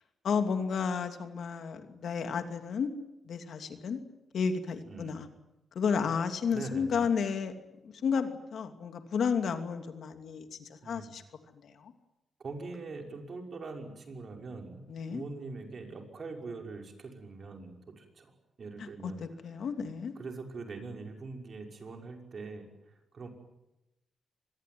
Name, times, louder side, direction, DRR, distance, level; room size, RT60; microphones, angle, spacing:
voice 1, 0.2-2.9 3.3-4.0 4.3-5.3 5.7-7.5 7.8-11.2 11.6-11.9 14.9-15.2 19.0-19.1 19.4-20.1, left 6 dB, 70° left, 7 dB, 2.8 m, -32 dB
voice 2, 4.8-5.2 6.5-7.1 10.8-11.1 12.4-14.8 15.1-18.3 18.6-19.3 20.2-23.3, right 3 dB, 50° right, 3 dB, 5.7 m, -43 dB
25.5 x 21.0 x 9.5 m, 0.93 s
cardioid pair, 95°, 0 cm